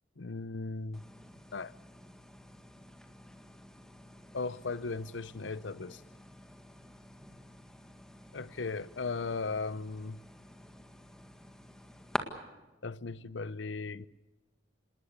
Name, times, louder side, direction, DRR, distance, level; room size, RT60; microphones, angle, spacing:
voice 1, 0.2-1.0 1.5-1.7 4.3-6.0 8.3-10.2 12.8-14.1, left 4 dB, 80° left, 0.8 m, -37 dB
sound 1, 0.9-12.2, equal, 5° left, 1.9 m, -47 dB
27.5 x 19.5 x 6.7 m
head